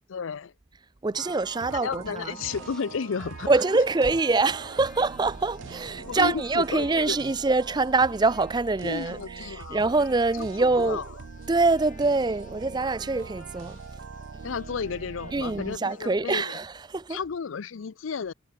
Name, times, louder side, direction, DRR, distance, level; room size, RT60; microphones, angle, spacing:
voice 1, 0.1-0.5 1.7-3.5 6.1-7.2 8.8-9.8 10.3-11.0 14.4-16.6 17.1-18.3, left 6 dB, 85° left, 0.5 m, -33 dB
voice 2, 1.0-2.4 3.5-11.0 11.5-13.8 15.3-17.2, right 3 dB, 20° right, 0.5 m, -25 dB
sound 1, 1.1-15.8, right 5 dB, 75° right, 0.5 m, -43 dB
sound 2, 1.8-6.8, equal, 5° left, 2.9 m, -51 dB
sound 3, 2.4-16.1, left 5 dB, 40° left, 7.5 m, -55 dB
head